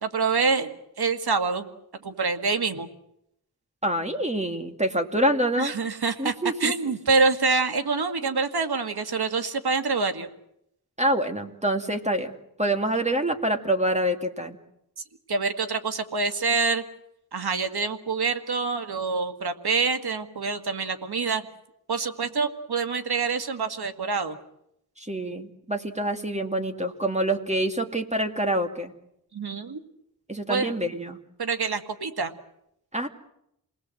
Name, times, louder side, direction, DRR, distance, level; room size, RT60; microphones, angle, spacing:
voice 1, 0.0-1.7 2.0-2.9 5.6-10.3 15.3-16.8 17.3-21.4 21.9-24.4 29.3-29.8 30.5-30.7 31.4-32.3, right 4 dB, 80° right, 8 dB, 2.0 m, -26 dB
voice 2, 3.8-5.7 6.2-6.7 11.0-12.3 12.6-14.6 25.0-28.9 30.3-31.2 32.9-33.1, right 1 dB, 20° right, 5 dB, 2.5 m, -26 dB
28.0 x 19.5 x 7.7 m, 0.78 s
cardioid pair, 45°, 38 cm